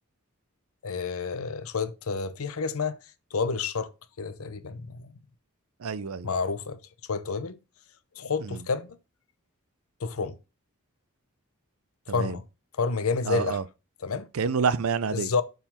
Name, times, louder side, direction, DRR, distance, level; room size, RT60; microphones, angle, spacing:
voice 1, 0.8-3.0 3.3-3.9 4.2-5.1 6.2-6.8 7.1-7.6 8.2-9.0 10.0-10.4 12.1-12.4 12.8-13.6 14.0-14.3 15.1-15.4, left 4 dB, 75° left, 0.7 m, -29 dB
voice 2, 5.8-6.3 8.4-8.6 12.1-12.4 13.2-13.6 14.3-15.3, right 5 dB, 70° right, 0.5 m, -28 dB
7.1 x 3.9 x 5.7 m
head